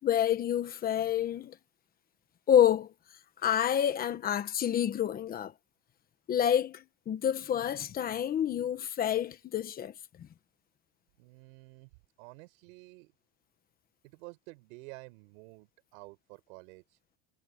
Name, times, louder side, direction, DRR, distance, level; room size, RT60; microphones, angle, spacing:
voice 1, 0.0-1.6 2.5-2.9 3.4-5.5 6.3-9.9 10.2-10.3, left 10 dB, 20° left, 1.2 m, -28 dB
voice 2, 11.2-11.9 12.2-13.1 14.0-17.0, right 26 dB, 85° right, 5.5 m, -51 dB
cardioid pair, 180°, 39 cm